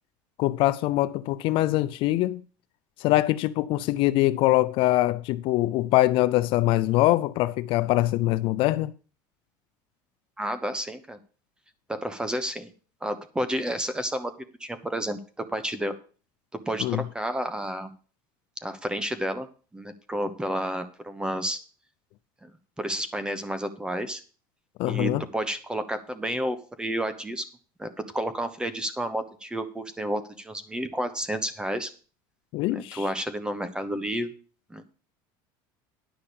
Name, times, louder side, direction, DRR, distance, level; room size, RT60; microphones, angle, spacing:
voice 1, 0.4-2.4 3.0-8.9 16.8-17.0 24.8-25.2 32.5-33.1, left 16 dB, 55° left, 0.5 m, -23 dB
voice 2, 10.4-11.2 11.9-12.7 13.0-14.3 14.6-15.9 16.5-17.9 18.6-19.5 19.7-21.6 22.4-22.5 22.8-24.2 24.9-27.4 27.8-31.9 32.7-34.3 34.7-34.9, right 1 dB, 10° right, 1.1 m, -31 dB
10.5 x 5.7 x 6.9 m
supercardioid pair, 135°, 11 cm